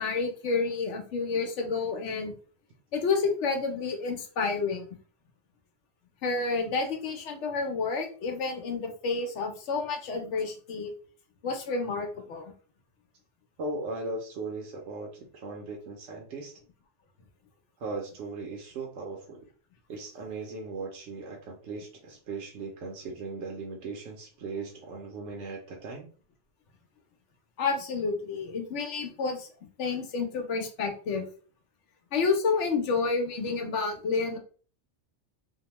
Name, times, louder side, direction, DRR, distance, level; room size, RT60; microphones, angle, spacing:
voice 1, 0.0-2.3 2.9-4.9 6.2-10.9 11.4-12.5 27.6-31.2 32.1-34.4, left 4 dB, 85° left, 4 dB, 1.0 m, -30 dB
voice 2, 13.6-16.5 17.8-19.4 19.9-26.1, right 3 dB, 80° right, 0 dB, 0.9 m, -38 dB
2.8 x 2.2 x 2.9 m, 0.41 s
omnidirectional pair, 1.2 m